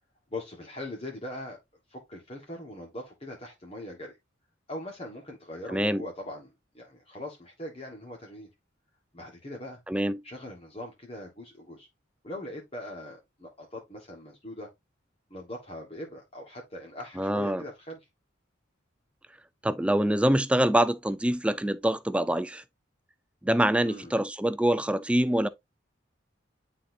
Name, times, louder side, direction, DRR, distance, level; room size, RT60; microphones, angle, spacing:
voice 1, 0.3-1.6 1.9-4.2 4.7-8.5 9.1-9.8 10.2-11.9 12.2-14.7 15.3-18.0 23.8-24.1, left 1 dB, 30° left, 1.5 m, -41 dB
voice 2, 5.7-6.0 9.9-10.2 17.2-17.6 19.6-22.6 23.4-25.5, right 1 dB, 5° right, 0.3 m, -25 dB
10.0 x 4.1 x 2.7 m
head